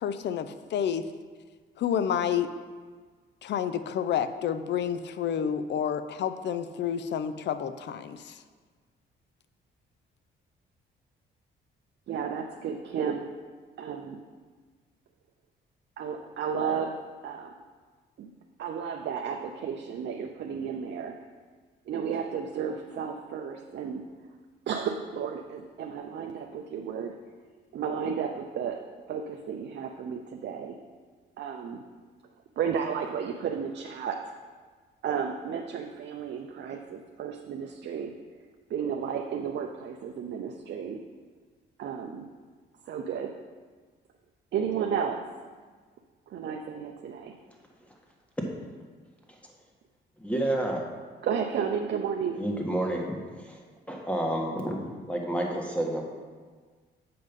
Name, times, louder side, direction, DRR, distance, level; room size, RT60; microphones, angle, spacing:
voice 1, 0.0-1.1 1.8-2.5 3.4-8.4, left 8 dB, 65° left, 11 dB, 0.5 m, -29 dB
voice 2, 12.1-13.2 13.8-14.2 16.0-16.9 17.2-17.5 18.2-18.3 18.6-21.2 21.9-24.0 24.7-27.2 27.7-28.8 29.1-30.8 31.4-31.8 32.6-34.3 35.0-38.1 38.7-41.0 41.8-42.3 42.8-43.3 44.5-45.2 46.3-47.3 51.2-52.4, right 7 dB, 60° right, 3 dB, 0.6 m, -33 dB
voice 3, 50.2-50.8 52.4-53.6 53.9-56.0, right 1 dB, 5° left, 0 dB, 1.6 m, -30 dB
7.7 x 5.5 x 5.3 m, 1.5 s
cardioid pair, 90°, 20 cm